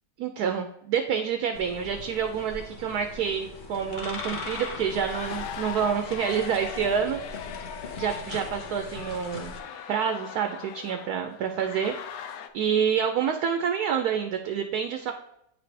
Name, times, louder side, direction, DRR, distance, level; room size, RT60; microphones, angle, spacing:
voice 1, 0.2-7.2 8.0-9.6 9.9-11.9 12.5-15.1, right 7 dB, 70° right, 6 dB, 1.0 m, -28 dB
sound 1, 1.5-9.6, left 3 dB, 45° left, 0.7 m, -40 dB
sound 2, 3.9-12.5, left 8 dB, 80° left, 1.2 m, -40 dB
8.6 x 4.2 x 3.2 m, 0.77 s
omnidirectional pair, 1.9 m